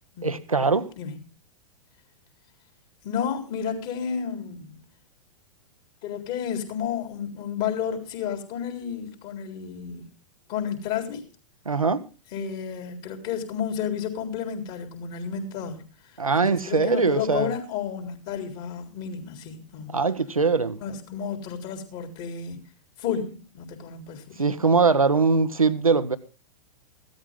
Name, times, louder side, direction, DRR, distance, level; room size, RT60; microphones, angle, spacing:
voice 1, 0.2-0.9 11.6-12.0 16.2-17.5 19.9-20.8 24.4-26.2, right 4 dB, 90° right, 1.0 m, -22 dB
voice 2, 3.0-4.8 6.0-10.1 10.5-11.3 12.3-20.0 20.8-22.7 23.0-24.4, left 7 dB, 45° left, 3.9 m, -32 dB
16.0 x 13.0 x 3.7 m
figure-of-eight pair, 105°, 17 cm